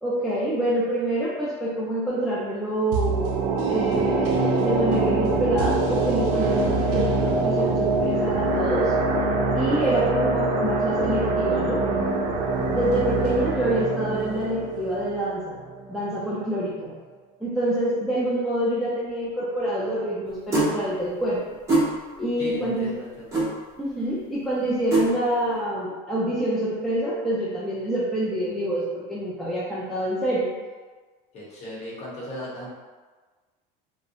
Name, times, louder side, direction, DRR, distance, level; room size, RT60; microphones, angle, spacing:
voice 1, 0.0-3.3 3.7-8.9 9.5-11.8 12.7-15.6 15.9-16.9 17.4-21.4 22.2-22.9 23.8-30.5, right 1 dB, ahead, -8 dB, 0.3 m, -26 dB
sound 1, 2.9-16.0 16.3-16.4, right 3 dB, 75° right, 0.4 m, -24 dB
voice 2, 9.6-10.1 22.4-23.3 31.3-32.7, left 1 dB, 35° left, -6 dB, 0.9 m, -36 dB
sound 2, 20.5-20.7 21.7-21.9 23.3-23.5 24.9-25.1, right 2 dB, 15° right, 0.7 m, -20 dB
2.6 x 2.0 x 2.6 m, 1.4 s
cardioid pair, 140°, 19 cm